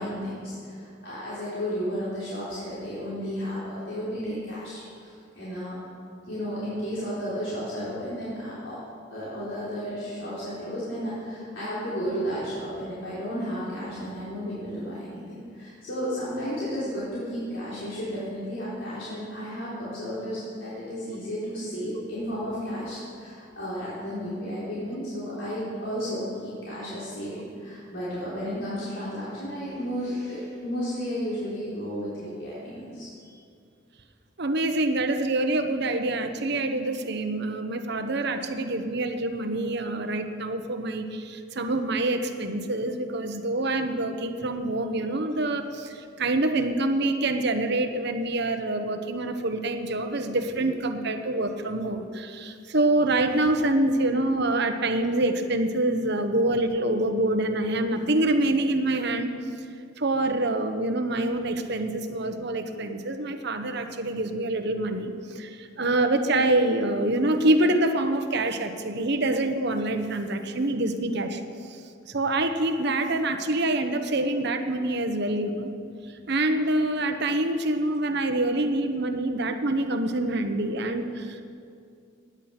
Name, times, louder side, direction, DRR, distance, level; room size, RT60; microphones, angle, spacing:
voice 1, 0.0-5.8 6.3-8.8 9.1-33.4, equal, 80° left, -10 dB, 4.2 m, -33 dB
voice 2, 34.4-59.3 60.0-71.4 71.7-71.8 72.1-75.7 76.3-81.4, right 2 dB, 60° right, 7 dB, 1.1 m, -26 dB
16.5 x 10.5 x 6.0 m, 2.4 s
head